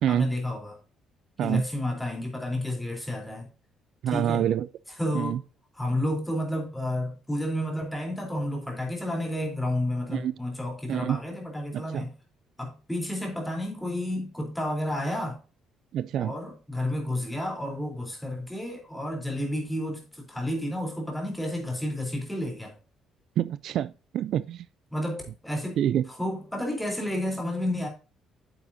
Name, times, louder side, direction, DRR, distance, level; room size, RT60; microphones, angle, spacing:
voice 1, 0.1-0.8 1.4-3.5 4.1-4.5 4.9-5.4 5.8-12.2 12.6-15.4 16.1-22.7 24.9-25.8 26.0-27.9, left 1 dB, 5° left, 3.7 m, -31 dB
voice 2, 4.0-4.7 5.1-5.4 10.1-10.3 10.9-11.2 11.7-12.0 15.9-16.3 23.4-24.7 25.8-26.1, right 10 dB, 65° right, 0.3 m, -27 dB
9.2 x 7.4 x 2.7 m
cardioid pair, 120°, 0 cm